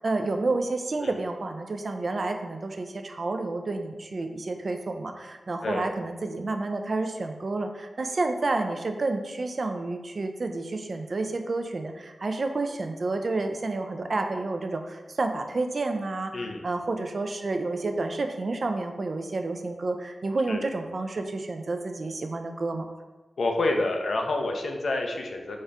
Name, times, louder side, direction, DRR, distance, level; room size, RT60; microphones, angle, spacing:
voice 1, 0.0-22.9, right 3 dB, 55° right, 5 dB, 0.3 m, -30 dB
voice 2, 16.3-16.6 20.5-20.6 23.4-25.6, left 2 dB, 75° left, 2 dB, 0.5 m, -28 dB
4.1 x 2.4 x 3.3 m, 1.2 s
wide cardioid pair, 80°, 0 cm